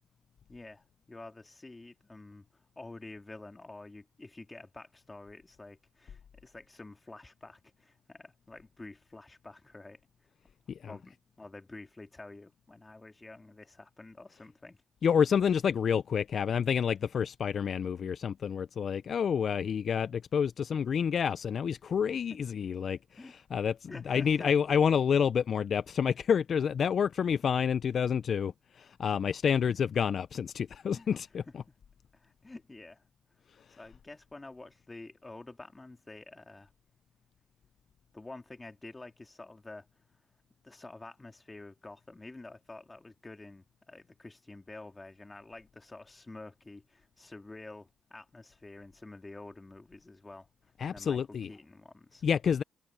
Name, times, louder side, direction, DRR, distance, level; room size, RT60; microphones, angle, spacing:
voice 1, 0.5-10.0 10.9-14.8 21.8-21.9 22.3-22.4 23.2-23.3 23.9-24.8 27.0-27.1 30.9-31.1 32.1-33.1 33.7-36.7 38.1-39.9 40.6-52.2, left 2 dB, 20° left, 2.9 m, -49 dB
voice 2, 15.0-31.4 50.8-51.5 52.2-52.6, left 7 dB, 55° left, 0.4 m, -29 dB
cardioid pair, 90°, 0 cm